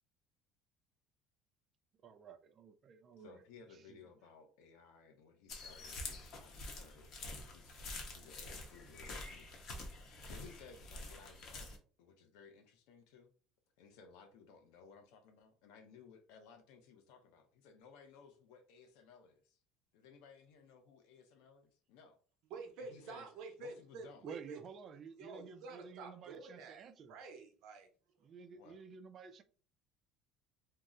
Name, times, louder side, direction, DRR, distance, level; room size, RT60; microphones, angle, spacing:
voice 1, 2.0-3.4 3.7-4.0 24.2-27.2 28.2-29.4, right 6 dB, 35° right, 0.4 m, -52 dB
voice 2, 3.2-7.8 8.1-9.9 10.3-13.3 13.8-19.6 19.9-22.2 22.8-23.3 23.6-24.2 28.6-28.8, left 5 dB, 85° left, 0.6 m, -59 dB
sound 1, 5.5-11.8, left 2 dB, 45° left, 0.8 m, -47 dB
voice 3, 22.5-24.6 25.2-27.9, right 4 dB, 65° right, 0.7 m, -49 dB
2.7 x 2.0 x 3.6 m
cardioid pair, 155°, 0 cm